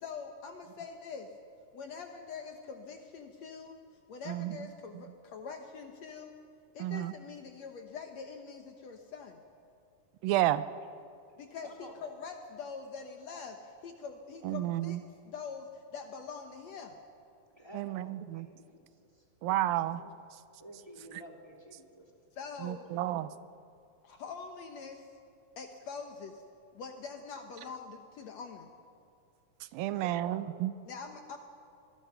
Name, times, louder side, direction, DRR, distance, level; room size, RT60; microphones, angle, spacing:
voice 1, 0.0-1.3 1.7-3.8 4.1-6.3 6.7-9.4 11.4-15.0 15.3-17.0 20.0-20.1 22.3-22.9 24.0-25.1 25.6-26.4 26.7-28.7 30.9-31.4, left 5 dB, 65° left, 5 dB, 1.9 m, -44 dB
voice 2, 4.3-4.7 6.8-7.1 10.2-10.6 14.4-15.0 17.7-18.5 19.4-20.0 22.6-23.3 29.7-30.7, right 14 dB, 90° right, 14 dB, 2.5 m, -31 dB
voice 3, 11.6-12.0 17.5-18.9 20.6-22.0 22.9-23.2 29.7-30.4, equal, 10° left, -1 dB, 2.4 m, -51 dB
24.5 x 20.0 x 5.8 m, 2.4 s
omnidirectional pair, 4.0 m